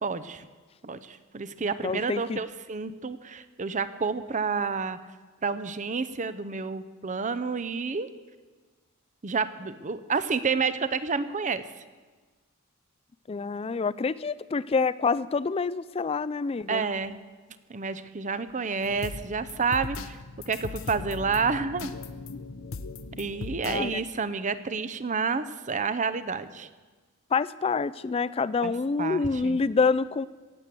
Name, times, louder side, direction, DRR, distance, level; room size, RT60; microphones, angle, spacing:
voice 1, 0.0-0.5 0.8-5.0 5.4-8.1 9.2-11.6 16.7-17.2 17.7-20.2 20.5-21.9 23.2-26.7 28.6-28.7 29.0-29.6, right 5 dB, 35° right, 13 dB, 0.6 m, -29 dB
voice 2, 1.8-2.4 13.3-16.8 23.6-24.0 27.3-30.3, left 4 dB, 25° left, 16 dB, 0.3 m, -27 dB
sound 1, 18.8-23.9, left 3 dB, 65° left, 0.7 m, -38 dB
17.0 x 8.3 x 7.6 m, 1.4 s
head